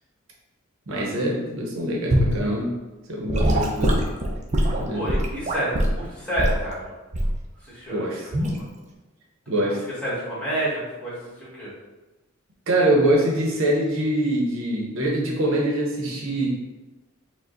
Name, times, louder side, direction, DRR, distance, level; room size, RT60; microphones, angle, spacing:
voice 1, 0.9-2.7 3.1-4.0 4.8-5.0 7.9-8.2 9.5-9.8 12.7-16.5, right 1 dB, 65° right, -2 dB, 0.8 m, -24 dB
Gurgling / Sink (filling or washing) / Liquid, 2.1-2.4 3.3-6.0 6.4-6.6 7.1-7.4 8.3-8.6, equal, 35° right, 0.6 m, -22 dB
voice 2, 4.9-6.9 7.5-8.7 9.7-11.7, right 1 dB, 5° left, -8 dB, 1.5 m, -30 dB
4.9 x 2.1 x 3.8 m, 1.1 s
head